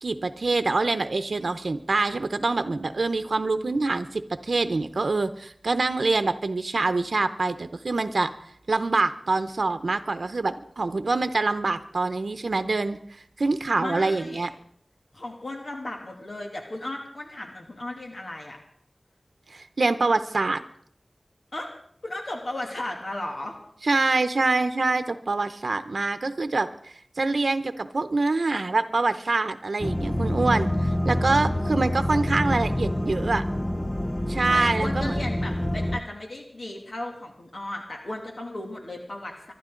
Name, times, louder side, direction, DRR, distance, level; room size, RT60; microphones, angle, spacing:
voice 1, 0.0-8.3 8.7-14.5 19.5-20.6 23.8-33.4 34.3-35.3, right 3 dB, 80° right, 10 dB, 0.8 m, -25 dB
voice 2, 13.8-14.5 15.1-18.6 21.5-21.7 22.0-23.6 34.5-39.5, left 1 dB, 70° left, 1 dB, 2.6 m, -35 dB
sound 1, 29.8-36.0, left 1 dB, 15° left, 0.6 m, -26 dB
25.0 x 12.0 x 3.9 m, 0.64 s
wide cardioid pair, 70°, 0 cm